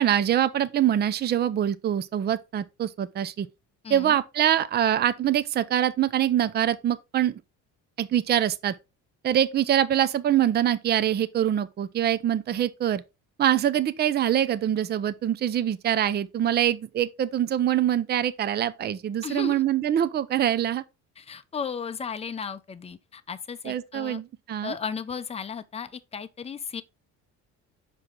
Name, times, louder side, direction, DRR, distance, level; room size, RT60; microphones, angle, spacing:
voice 1, 0.0-3.5 3.9-7.4 8.0-8.7 9.2-13.0 13.4-20.8 23.6-24.8, right 10 dB, 30° right, 0.5 m, -24 dB
voice 2, 3.8-4.2 19.2-19.6 21.2-24.2 24.6-26.8, left 6 dB, 20° left, 0.6 m, -35 dB
6.0 x 4.9 x 3.8 m
cardioid pair, 115°, 31 cm